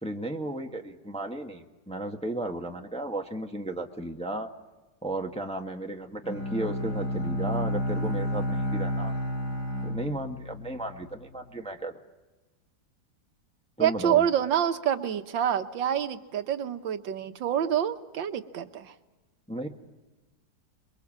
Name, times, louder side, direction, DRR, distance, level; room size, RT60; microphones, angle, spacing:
voice 1, 0.0-4.5 5.0-9.1 9.8-11.9 13.8-14.3 19.5-19.7, right 1 dB, 5° left, 3 dB, 1.2 m, -34 dB
Bowed string instrument, 6.2-11.2, equal, 90° left, 6.6 m, -31 dB
voice 2, 13.8-18.9, right 9 dB, 75° right, 9 dB, 1.7 m, -27 dB
27.5 x 22.5 x 7.4 m, 1.2 s
omnidirectional pair, 2.0 m